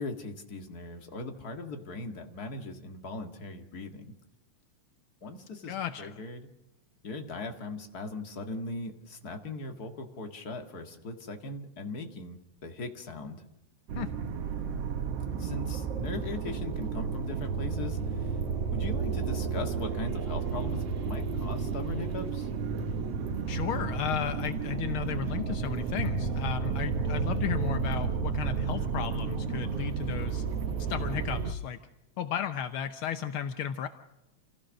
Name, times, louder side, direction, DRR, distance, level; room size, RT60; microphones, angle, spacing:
voice 1, 0.0-4.1 5.2-6.5 7.0-13.4 15.3-18.4 18.7-22.5, left 3 dB, 35° left, 5 dB, 2.0 m, -39 dB
voice 2, 5.7-6.2 14.0-14.1 23.5-30.4 30.9-31.8 32.2-33.9, left 9 dB, 70° left, 9 dB, 1.2 m, -34 dB
sound 1, 13.9-31.5, right 5 dB, 60° right, 2.1 m, -32 dB
28.0 x 16.0 x 6.4 m, 0.97 s
omnidirectional pair, 3.3 m